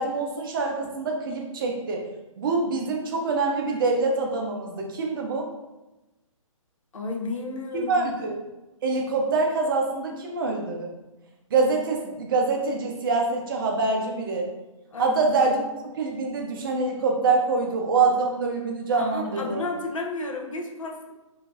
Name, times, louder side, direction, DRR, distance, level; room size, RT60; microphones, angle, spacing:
voice 1, 0.0-2.0 2.4-5.5 7.9-8.4 8.8-10.9 11.5-14.5 15.0-19.6, right 3 dB, 40° right, 1 dB, 0.6 m, -25 dB
voice 2, 6.9-8.1 14.9-15.2 18.9-21.1, left 3 dB, 70° left, 2 dB, 0.7 m, -32 dB
3.7 x 2.7 x 2.5 m, 1.0 s
figure-of-eight pair, 130°, 17 cm